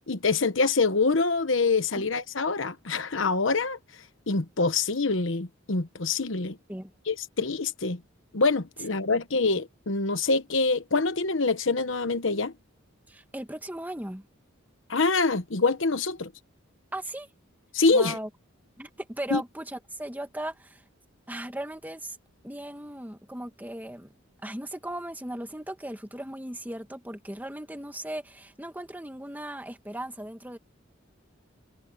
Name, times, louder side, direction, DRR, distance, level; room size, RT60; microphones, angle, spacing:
voice 1, 0.1-6.6 7.1-8.0 8.3-12.5 14.9-16.3 17.7-18.2 19.3-19.4, left 3 dB, 65° left, 1.1 m, -25 dB
voice 2, 13.1-14.2 16.9-17.3 17.9-18.3 18.8-20.8 21.3-22.2 22.4-24.1 24.4-30.6, right 1 dB, 10° right, 2.0 m, -37 dB
head